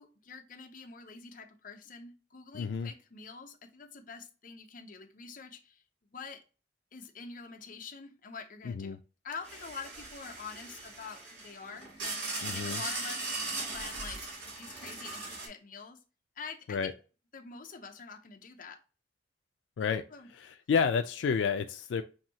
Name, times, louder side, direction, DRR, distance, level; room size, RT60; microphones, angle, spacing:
voice 1, 0.0-5.8 6.1-6.4 6.9-9.0 9.2-11.9 12.4-13.4 13.7-14.2 14.5-16.0 16.4-16.9 17.3-18.8 20.1-20.3, left 5 dB, 50° left, 4 dB, 0.7 m, -46 dB
voice 2, 2.5-2.9 8.6-9.0 12.4-12.8 16.7-16.9 19.8-20.0 20.3-22.0, left 6 dB, 85° left, 8 dB, 0.3 m, -30 dB
sound 1, 9.4-15.5, right 3 dB, 85° right, 2.3 m, -39 dB
5.7 x 2.7 x 2.8 m, 0.34 s
head